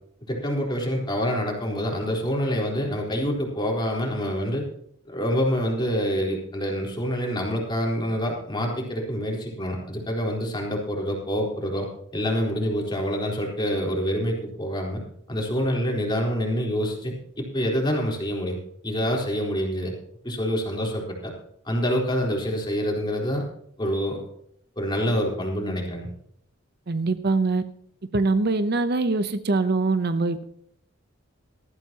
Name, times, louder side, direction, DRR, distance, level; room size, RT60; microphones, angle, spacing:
voice 1, 0.3-4.6 5.1-15.0 15.3-18.6 18.8-19.9 20.2-21.3 21.6-23.4 23.8-24.2 24.8-26.1, equal, 25° left, 0 dB, 3.9 m, -26 dB
voice 2, 26.9-27.6 28.1-30.4, right 3 dB, 55° right, 11 dB, 0.8 m, -23 dB
19.0 x 14.0 x 2.9 m, 0.69 s
head